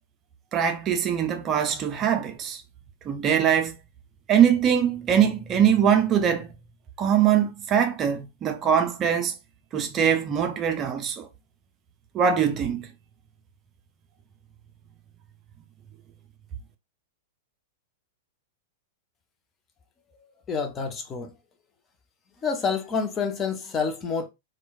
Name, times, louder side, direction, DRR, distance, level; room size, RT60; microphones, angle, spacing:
voice 1, 0.5-2.6 3.1-3.7 4.3-6.5 7.0-9.3 9.7-11.3 12.1-12.9, right 8 dB, 30° right, 0.4 m, -22 dB
voice 2, 20.2-21.3 22.4-24.3, left 5 dB, 25° left, 0.5 m, -28 dB
3.0 x 2.1 x 2.3 m
figure-of-eight pair, 100°, 0 cm